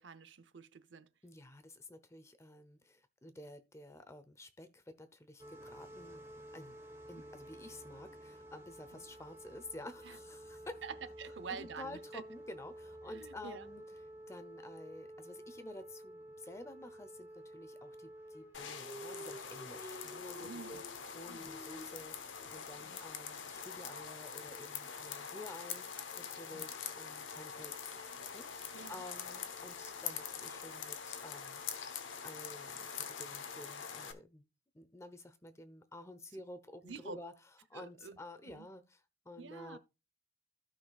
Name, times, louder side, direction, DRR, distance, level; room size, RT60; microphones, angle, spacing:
voice 1, 0.0-1.1 7.1-7.2 8.9-9.0 10.0-10.2 10.8-12.2 13.1-13.7 20.4-20.8 21.3-21.5 22.8-23.0 26.5-26.6 28.7-29.0 36.8-37.2 37.7-38.2 38.5-38.7 39.4-39.8, right 5 dB, 75° right, 0.6 m, -48 dB
voice 2, 1.2-6.2 6.5-6.8 7.1-10.8 11.5-13.8 14.3-20.8 21.1-25.9 26.2-27.9 28.3-34.4 34.7-37.3 37.7-39.8, left 1 dB, 15° left, 0.7 m, -51 dB
sound 1, 5.4-23.2, equal, 15° right, 1.3 m, -51 dB
sound 2, 18.5-34.1, left 7 dB, 85° left, 1.0 m, -44 dB
15.5 x 5.7 x 2.4 m
head